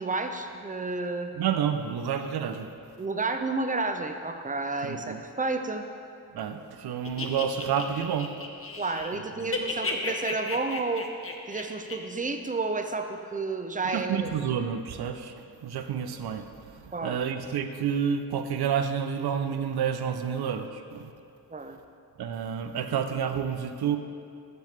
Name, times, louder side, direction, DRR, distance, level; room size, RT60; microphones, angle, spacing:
voice 1, 0.0-1.3 3.0-5.9 8.8-11.1 11.5-14.3 16.9-17.2 21.5-21.8, right 3 dB, 20° right, 7 dB, 0.5 m, -31 dB
voice 2, 1.4-2.7 4.8-5.2 6.3-8.3 9.4-9.5 13.8-15.3 15.6-16.5 16.8-21.1 22.2-24.0, right 8 dB, 90° right, 8 dB, 0.5 m, -29 dB
sound 1, 7.0-9.1 9.4-12.0, left 3 dB, 35° left, 0.7 m, -34 dB
6.8 x 6.6 x 3.2 m, 2.4 s
cardioid pair, 50°, 37 cm